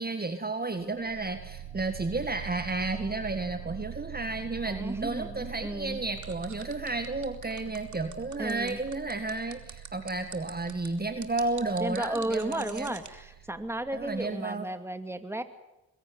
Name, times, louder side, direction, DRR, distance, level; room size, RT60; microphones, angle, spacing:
voice 1, 0.0-12.9 13.9-14.7, right 3 dB, 25° right, 8 dB, 1.8 m, -32 dB
sound 1, 0.9-14.3, right 11 dB, 75° right, 1.4 m, -45 dB
voice 2, 4.7-6.0 8.4-8.8 11.8-15.4, right 1 dB, 5° right, 9 dB, 2.4 m, -34 dB
sound 2, 6.2-13.1, right 6 dB, 45° right, 3.0 m, -45 dB
22.5 x 17.0 x 9.6 m, 0.95 s
supercardioid pair, 60°, 39 cm